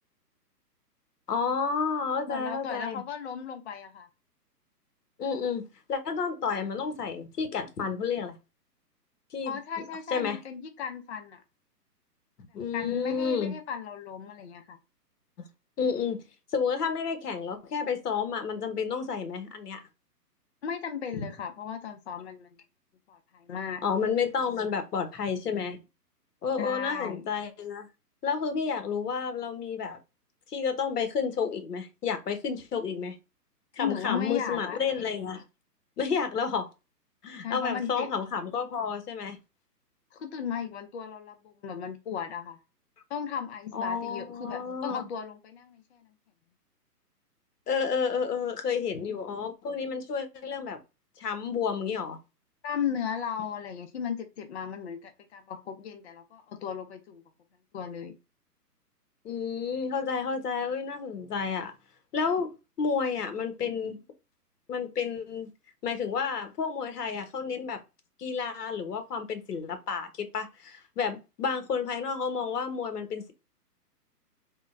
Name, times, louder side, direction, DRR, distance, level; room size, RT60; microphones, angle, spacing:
voice 1, 1.3-3.0 5.2-8.3 9.3-9.6 10.1-10.4 12.5-13.5 15.4-15.5 15.8-16.2 16.5-19.8 21.2-21.3 23.8-25.8 26.4-27.9 28.2-30.0 30.5-33.2 33.7-35.4 36.0-36.7 37.2-39.4 43.7-45.0 47.7-50.8 51.2-52.2 59.2-61.7 62.1-62.5 62.8-64.0 64.7-65.5 65.8-67.8 68.2-73.3, left 6 dB, 70° left, 1.0 m, -30 dB
voice 2, 2.3-4.1 9.4-11.4 12.7-14.8 20.6-22.6 23.1-23.8 26.6-27.3 33.8-34.8 37.4-38.1 40.1-42.6 43.1-46.0 52.6-57.2 57.7-58.1, left 7 dB, 45° left, 0.5 m, -36 dB
3.5 x 2.1 x 2.5 m
hypercardioid pair, 145°, 49 cm